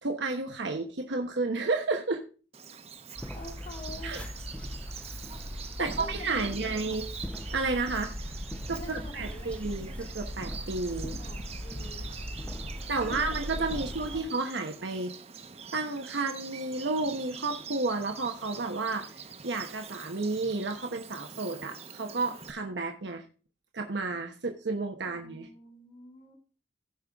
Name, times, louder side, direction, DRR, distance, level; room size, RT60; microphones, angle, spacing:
voice 1, 0.0-2.2 4.0-4.2 5.8-7.0 7.5-8.1 8.7-11.2 12.9-15.1 15.7-23.2 23.7-25.5, right 3 dB, 85° right, 4 dB, 1.1 m, -31 dB
Bird vocalization bird call bird song, 2.5-22.5, right 6 dB, 35° right, 0.8 m, -45 dB
sound 1, 3.2-14.2, equal, 5° left, 0.6 m, -39 dB
voice 2, 3.3-4.1 5.8-7.0 8.8-9.7 11.2-12.1 12.8-14.3 25.0-26.4, left 2 dB, 50° left, 0 dB, 2.2 m, -47 dB
16.0 x 5.4 x 3.5 m, 0.36 s
head